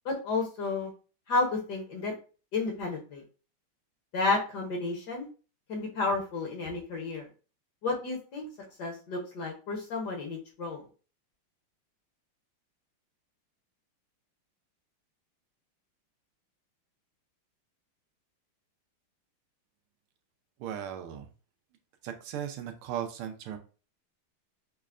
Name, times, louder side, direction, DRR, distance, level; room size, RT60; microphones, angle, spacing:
voice 1, 0.0-0.9 1.3-2.1 2.5-3.2 4.1-5.3 5.7-7.3 7.8-8.5 8.8-10.8, left 3 dB, 60° left, 1 dB, 1.2 m, -31 dB
voice 2, 20.6-21.3 22.0-23.6, right 9 dB, 85° right, 6 dB, 1.5 m, -37 dB
5.5 x 2.1 x 2.4 m, 0.35 s
omnidirectional pair, 2.4 m